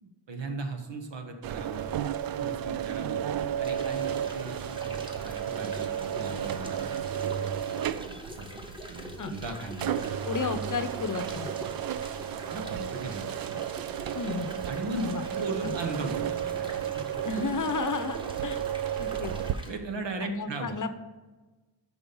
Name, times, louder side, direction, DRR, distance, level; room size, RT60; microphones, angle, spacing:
voice 1, 0.0-1.9 2.4-3.2 3.6-7.0 7.3-7.4 8.0-10.1 12.3-13.6 14.6-15.0 15.3-17.0 19.6-20.8, right 3 dB, 70° right, 5 dB, 1.3 m, -38 dB
sound 1, 1.4-19.6, right 9 dB, 50° right, 0.5 m, -33 dB
sound 2, 3.6-19.7, equal, 10° right, 1.3 m, -45 dB
voice 2, 10.2-11.5 14.1-14.5 14.9-15.2 15.6-15.8 17.2-18.6 19.0-19.3 20.2-20.9, left 4 dB, 40° left, 10 dB, 0.7 m, -32 dB
6.1 x 5.6 x 5.3 m, 1.2 s
cardioid pair, 60°, 46 cm